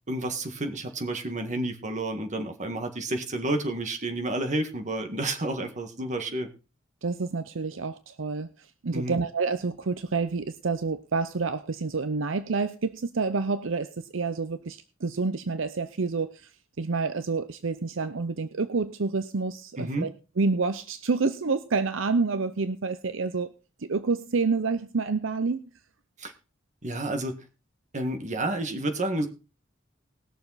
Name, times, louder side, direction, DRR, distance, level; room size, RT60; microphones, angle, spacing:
voice 1, 0.1-6.5 8.9-9.2 19.8-20.1 26.2-26.3 26.8-27.4 27.9-29.3, right 1 dB, 40° right, 6 dB, 1.8 m, -30 dB
voice 2, 7.0-8.5 8.8-16.5 16.8-23.5 23.8-25.6, right 4 dB, 75° right, 12 dB, 0.7 m, -28 dB
19.5 x 6.9 x 4.1 m, 0.33 s
head